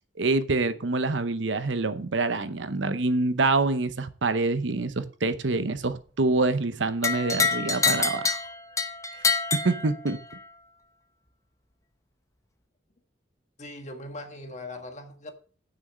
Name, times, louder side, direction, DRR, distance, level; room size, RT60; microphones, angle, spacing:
voice 1, 0.2-8.4 9.5-10.2, right 3 dB, 90° right, 0.9 m, -26 dB
sound 1, 7.0-10.4, left 4 dB, 20° left, 0.9 m, -27 dB
voice 2, 13.6-15.3, left 2 dB, 40° left, 1.5 m, -40 dB
9.5 x 6.3 x 6.2 m
head